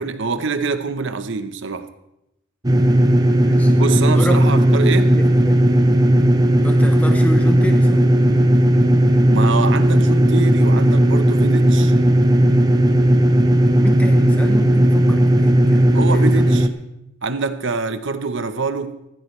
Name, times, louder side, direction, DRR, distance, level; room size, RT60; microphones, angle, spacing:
voice 1, 0.0-1.9 3.8-5.1 9.3-11.9 15.9-16.7 17.2-19.0, right 4 dB, 60° right, 10 dB, 0.9 m, -25 dB
sound 1, 2.6-16.7, right 1 dB, 20° right, 0.7 m, -15 dB
voice 2, 3.4-3.7 4.1-4.4 5.1-5.6 6.6-8.0 13.8-16.5, equal, 5° left, 4 dB, 0.9 m, -29 dB
17.5 x 15.0 x 3.3 m, 0.86 s
head